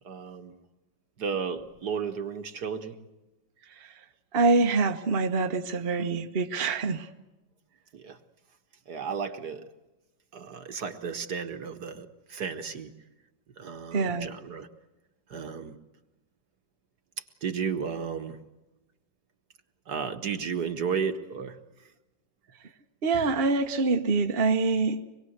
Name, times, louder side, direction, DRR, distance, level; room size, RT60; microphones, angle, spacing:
voice 1, 0.1-0.6 1.2-3.0 7.9-8.2 8.9-9.7 10.3-12.9 13.6-14.7 15.3-15.8 17.4-18.4 19.9-21.6, right 6 dB, 55° right, 8 dB, 1.9 m, -33 dB
voice 2, 4.3-7.1 13.9-14.3 23.0-25.0, right 3 dB, 35° right, 5 dB, 1.3 m, -25 dB
25.5 x 22.0 x 8.0 m, 1.0 s
omnidirectional pair, 2.1 m